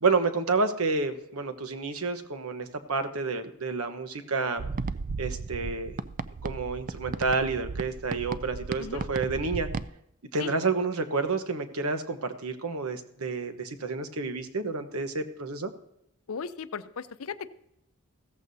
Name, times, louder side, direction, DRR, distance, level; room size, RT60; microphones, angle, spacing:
voice 1, 0.0-4.6 5.2-6.0 6.4-9.7 10.3-15.7, right 4 dB, 75° right, 9 dB, 1.1 m, -29 dB
sound 1, 4.6-9.9, right 4 dB, 35° right, 0.4 m, -35 dB
voice 2, 16.3-17.5, left 6 dB, 70° left, 13 dB, 0.6 m, -36 dB
15.5 x 14.0 x 2.8 m, 0.76 s
head